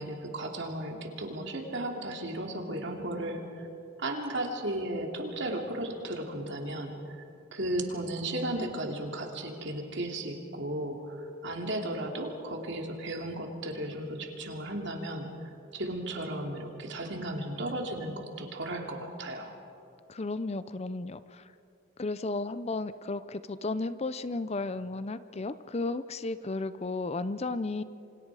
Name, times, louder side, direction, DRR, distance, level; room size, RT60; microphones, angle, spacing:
voice 1, 0.0-3.7 4.0-7.2 7.5-15.3 15.7-19.6, right 1 dB, 60° right, 2 dB, 2.8 m, -35 dB
voice 2, 20.1-21.5 22.0-27.8, left 3 dB, 30° left, 14 dB, 0.6 m, -34 dB
28.0 x 25.5 x 4.9 m, 2.7 s
head